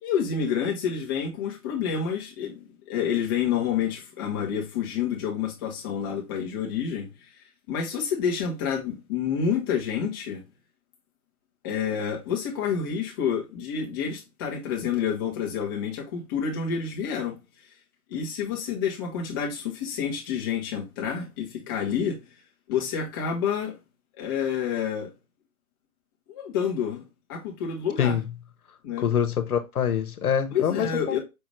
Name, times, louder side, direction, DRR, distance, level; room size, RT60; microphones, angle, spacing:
voice 1, 0.0-7.1 7.7-10.4 11.6-17.3 18.1-22.2 22.7-23.7 24.2-25.1 26.3-27.0 27.3-28.2 28.8-29.1 30.5-31.2, left 7 dB, 15° left, 0.7 m, -28 dB
voice 2, 29.0-31.2, left 8 dB, 85° left, 1.0 m, -25 dB
5.3 x 2.5 x 3.0 m
hypercardioid pair, 155°, 43 cm